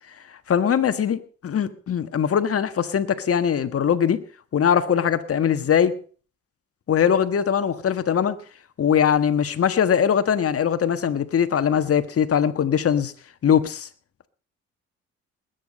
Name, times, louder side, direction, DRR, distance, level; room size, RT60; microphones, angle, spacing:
voice 1, 0.5-4.2 4.5-6.0 6.9-8.4 8.8-13.1 13.4-13.9, left 8 dB, 50° left, 10 dB, 1.5 m, -21 dB
20.5 x 9.5 x 5.3 m, 0.41 s
cardioid pair, 90°, 30 cm